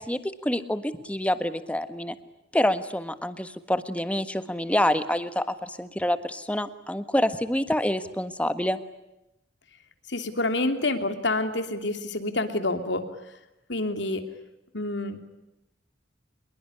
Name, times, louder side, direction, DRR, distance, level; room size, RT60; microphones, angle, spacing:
voice 1, 0.0-2.1 2.5-8.8, left 1 dB, 5° left, 11 dB, 1.5 m, -27 dB
voice 2, 10.1-13.0 13.7-14.2 14.7-15.2, left 2 dB, 65° left, 8 dB, 3.1 m, -27 dB
26.0 x 22.5 x 9.8 m, 0.91 s
head